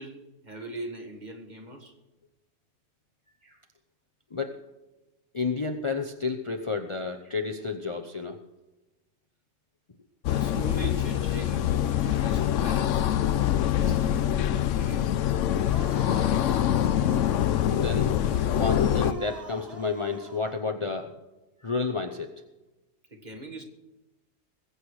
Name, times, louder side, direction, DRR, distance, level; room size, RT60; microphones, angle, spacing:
voice 1, 0.0-1.9 10.3-14.3 14.7-15.2 23.1-23.6, right 2 dB, 35° right, 3 dB, 1.9 m, -41 dB
voice 2, 4.3-4.6 5.3-8.4 17.7-21.1 21.6-22.3, left 4 dB, 30° left, 5 dB, 0.7 m, -31 dB
sound 1, 10.2-19.1, left 10 dB, 75° left, 1.0 m, -24 dB
sound 2, 15.7-20.6, equal, ahead, 2.0 m, -45 dB
21.0 x 8.1 x 4.8 m, 1.1 s
omnidirectional pair, 1.3 m